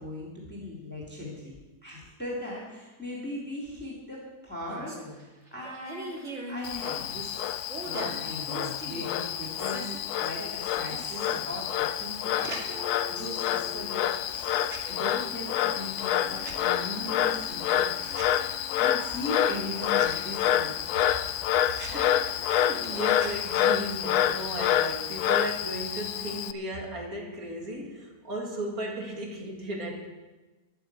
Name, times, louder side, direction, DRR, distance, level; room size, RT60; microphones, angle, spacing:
voice 1, 0.0-1.5 1.8-6.2 6.5-7.4 7.8-20.7, left 1 dB, 5° left, -4 dB, 2.9 m, -39 dB
sound 1, 4.7-23.9, right 1 dB, 45° right, 2.3 m, -43 dB
Frog, 6.6-26.5, left 11 dB, 75° left, 1.1 m, -28 dB
voice 2, 21.7-30.1, right 1 dB, 60° right, 0 dB, 2.8 m, -36 dB
11.5 x 9.8 x 8.2 m, 1.2 s
omnidirectional pair, 1.7 m